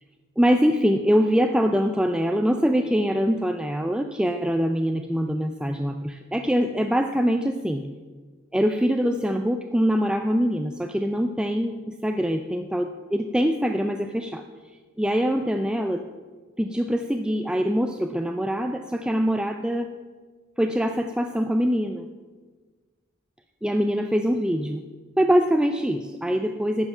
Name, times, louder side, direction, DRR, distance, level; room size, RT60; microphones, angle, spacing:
voice 1, 0.4-7.9 8.5-14.4 15.0-16.0 16.6-19.9 20.6-22.1 23.6-24.8 25.2-26.9, equal, 5° right, 6 dB, 0.4 m, -23 dB
11.5 x 7.9 x 5.5 m, 1.4 s
head